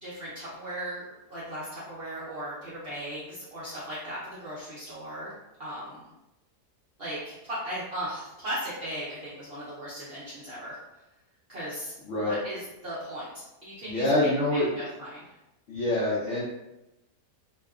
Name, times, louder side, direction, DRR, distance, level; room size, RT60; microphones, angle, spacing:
voice 1, 0.0-1.0 1.3-5.3 5.6-6.0 7.0-10.8 11.5-11.9 12.2-13.3 13.6-14.1 14.5-15.3, equal, 55° right, -9 dB, 0.6 m, -37 dB
voice 2, 12.1-12.4 13.8-14.7 15.7-16.4, left 2 dB, 70° left, -7 dB, 0.7 m, -25 dB
2.7 x 2.3 x 2.3 m, 0.95 s
omnidirectional pair, 1.8 m